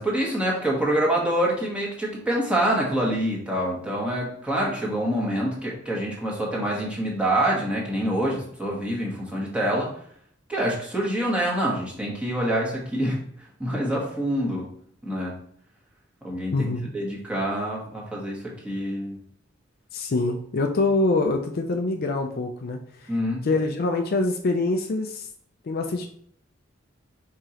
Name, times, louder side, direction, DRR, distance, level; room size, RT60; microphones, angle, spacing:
voice 1, 0.0-9.9 10.5-13.2 13.6-14.7 15.0-15.4 16.2-19.2 23.1-23.4, right 1 dB, 5° right, -4 dB, 1.2 m, -26 dB
voice 2, 16.5-16.9 19.9-23.1 23.4-25.3 25.6-26.1, left 2 dB, 50° left, 4 dB, 0.4 m, -25 dB
4.8 x 3.7 x 2.9 m, 0.63 s
head